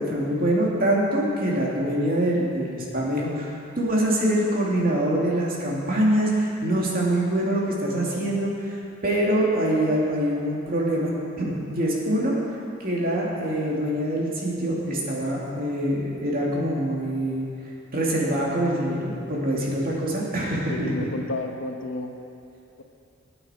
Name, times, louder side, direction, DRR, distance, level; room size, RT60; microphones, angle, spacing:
voice 1, 0.0-12.4 12.8-17.5 17.9-20.9, right 1 dB, 50° right, -4 dB, 2.5 m, -24 dB
voice 2, 20.7-22.1, left 2 dB, 75° left, 3 dB, 1.1 m, -31 dB
19.0 x 8.7 x 4.4 m, 2.6 s
head